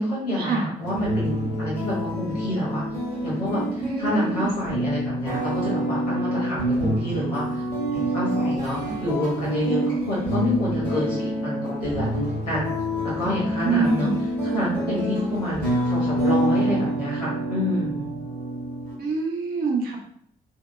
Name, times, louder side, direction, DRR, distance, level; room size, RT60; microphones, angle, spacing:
voice 1, 0.0-2.9 3.2-7.6 7.9-12.7 13.0-14.1 14.4-18.1, equal, 80° left, -7 dB, 1.1 m, -28 dB
sound 1, 0.8-19.0, equal, 90° right, 0.7 m, -27 dB
voice 2, 3.8-4.5 13.6-14.2 19.0-20.0, right 4 dB, 50° right, 0 dB, 0.7 m, -25 dB
2.8 x 2.2 x 3.0 m, 0.65 s
figure-of-eight pair, 40°, 20 cm